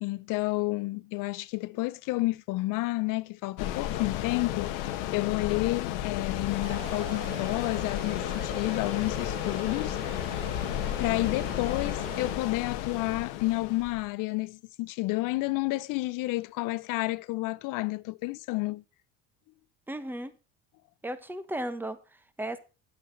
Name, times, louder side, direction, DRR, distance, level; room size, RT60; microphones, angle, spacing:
voice 1, 0.0-4.7 5.1-10.5 11.0-18.8, left 21 dB, 60° left, 0.7 m, -30 dB
sound 1, 3.6-14.1, left 12 dB, 75° left, 1.2 m, -33 dB
sound 2, 6.6-12.3, right 1 dB, 80° right, 6.1 m, -41 dB
voice 2, 19.9-20.3 21.0-22.6, right 1 dB, 5° right, 1.2 m, -35 dB
11.0 x 8.6 x 4.1 m
hypercardioid pair, 80°, 35 cm